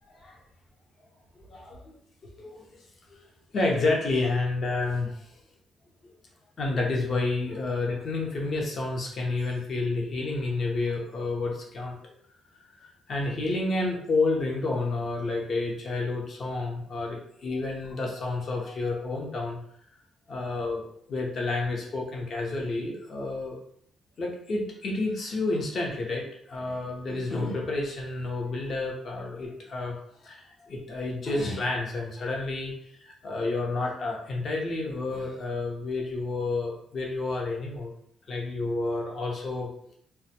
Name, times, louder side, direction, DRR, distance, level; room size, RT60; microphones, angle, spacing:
voice 1, 1.5-2.0 2.4-2.7 3.5-5.3 6.6-12.0 12.8-19.6 20.3-23.6 24.2-30.0 30.2-32.7 33.0-37.9 38.3-39.7, left 2 dB, 50° left, -1 dB, 0.7 m, -30 dB
2.2 x 2.1 x 2.8 m, 0.67 s
cardioid pair, 90°, 0 cm